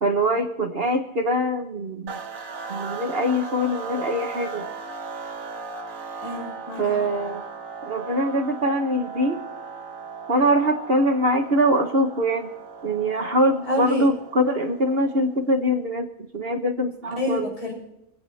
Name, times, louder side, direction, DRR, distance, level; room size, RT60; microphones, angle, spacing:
voice 1, 0.0-2.2 2.7-4.7 6.8-7.4 7.8-9.4 10.3-12.5 12.8-17.5, equal, 40° right, 5 dB, 1.4 m, -23 dB
sound 1, 2.1-15.5, right 4 dB, 60° right, 1.8 m, -37 dB
voice 2, 6.2-7.1 13.7-14.1 17.1-17.7, left 2 dB, 70° left, -3 dB, 7.4 m, -28 dB
25.5 x 8.8 x 4.2 m, 0.81 s
omnidirectional pair, 1.6 m